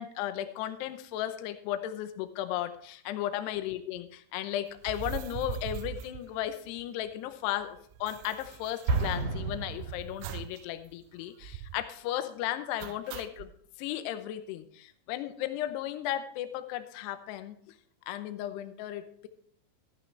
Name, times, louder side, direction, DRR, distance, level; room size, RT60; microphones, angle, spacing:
voice 1, 0.0-13.5 13.8-17.7 18.1-19.3, left 12 dB, 80° left, 9 dB, 2.5 m, -35 dB
sound 1, 4.8-7.1 7.3-7.4 7.6-9.7 10.2-10.6 10.9-11.0 11.4-11.9 12.8-13.5, right 10 dB, 85° right, 2.6 m, -41 dB
Explosion, 8.9-10.7, right 3 dB, 50° right, 3.0 m, -31 dB
13.5 x 11.5 x 3.3 m, 0.62 s
omnidirectional pair, 5.8 m